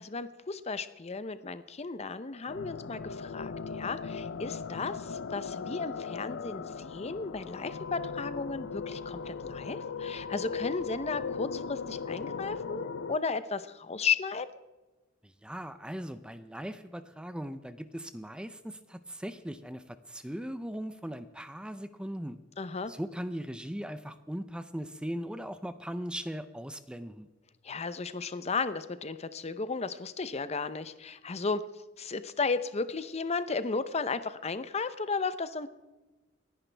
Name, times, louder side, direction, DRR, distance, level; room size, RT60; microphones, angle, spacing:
voice 1, 0.0-14.5 22.6-22.9 27.6-31.6 32.0-35.7, left 4 dB, 35° left, 13 dB, 0.7 m, -34 dB
sound 1, 2.5-13.2, left 5 dB, 70° left, 0.5 m, -38 dB
voice 2, 15.2-22.4 22.9-27.3, equal, 5° right, 11 dB, 0.5 m, -39 dB
29.5 x 10.5 x 3.4 m, 1.2 s
head